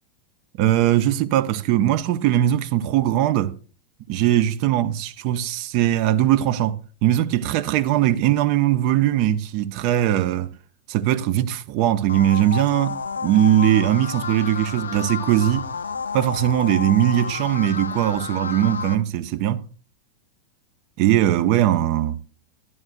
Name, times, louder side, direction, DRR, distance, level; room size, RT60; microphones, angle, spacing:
voice 1, 0.6-3.6 4.1-10.5 10.9-13.0 13.2-15.7 16.1-19.6 21.0-22.2, right 12 dB, 45° right, 0.6 m, -20 dB
sound 1, 12.1-18.9, left 5 dB, 70° left, 0.6 m, -31 dB
12.5 x 11.0 x 2.5 m
figure-of-eight pair, 90°, 0 cm